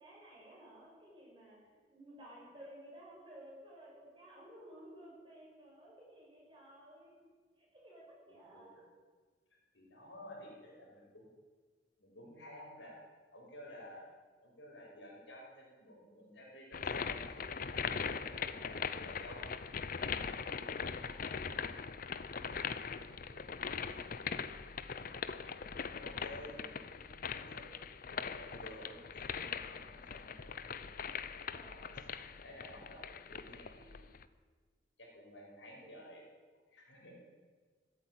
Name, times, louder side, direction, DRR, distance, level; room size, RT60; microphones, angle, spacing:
voice 1, 0.0-1.6 1.9-7.2 7.6-8.8 31.5-31.8 35.8-36.0, right 1 dB, 25° right, -5 dB, 6.5 m, -55 dB
voice 2, 8.3-8.6 9.7-11.3 12.0-13.0 13.3-14.1 14.4-19.5 20.2-21.8 22.4-23.7 23.9-24.4 25.5-27.0 27.3-27.7 28.3-30.5 31.6-34.0 35.0-36.2 36.6-37.3, left 1 dB, 80° left, -2 dB, 5.0 m, -54 dB
sound 1, 16.7-34.3, left 6 dB, 50° left, 0.6 m, -41 dB
15.0 x 8.9 x 9.0 m, 1.5 s
head